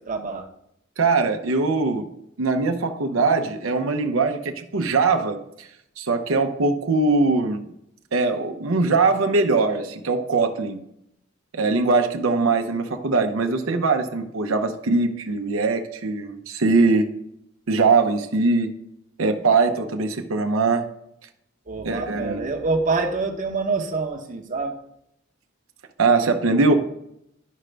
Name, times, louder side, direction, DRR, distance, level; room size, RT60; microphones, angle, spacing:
voice 1, 0.1-0.5 21.7-24.8, right 3 dB, 40° right, 2 dB, 0.8 m, -26 dB
voice 2, 1.0-2.1 2.4-5.7 6.0-7.7 8.1-10.8 11.5-17.0 17.7-18.7 19.2-20.9 21.8-22.4 26.0-26.7, right 3 dB, 90° right, 6 dB, 0.7 m, -21 dB
11.0 x 5.1 x 3.3 m, 0.78 s
head